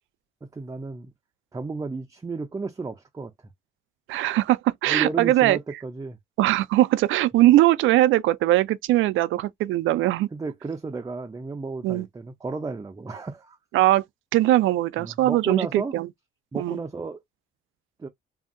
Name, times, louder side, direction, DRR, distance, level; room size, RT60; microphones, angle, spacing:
voice 1, 0.4-1.1 1.5-3.3 4.9-6.2 10.3-13.6 15.0-15.9 16.5-17.2 18.0-18.1, right 4 dB, 15° right, 0.5 m, -33 dB
voice 2, 4.1-5.6 6.4-10.3 11.8-12.1 13.7-14.0 14.3-16.1 16.6-16.8, right 15 dB, 85° right, 0.4 m, -20 dB
2.7 x 2.5 x 2.5 m
cardioid pair, 90°, 20 cm